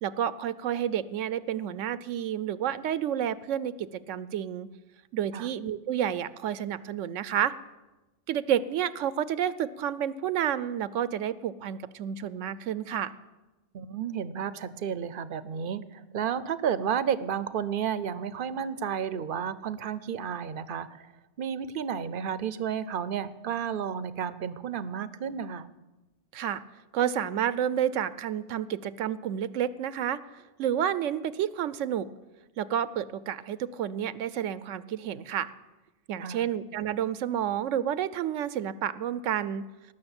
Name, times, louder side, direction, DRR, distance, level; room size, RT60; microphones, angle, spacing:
voice 1, 0.0-4.7 5.1-7.5 8.3-13.1 26.3-26.6 26.9-32.1 32.6-35.5 36.1-39.7, right 9 dB, 80° right, 17 dB, 1.0 m, -30 dB
voice 2, 13.7-21.1 21.4-25.7 36.2-36.5, right 8 dB, 55° right, 16 dB, 0.7 m, -32 dB
19.0 x 6.5 x 8.8 m, 1.1 s
omnidirectional pair, 1.3 m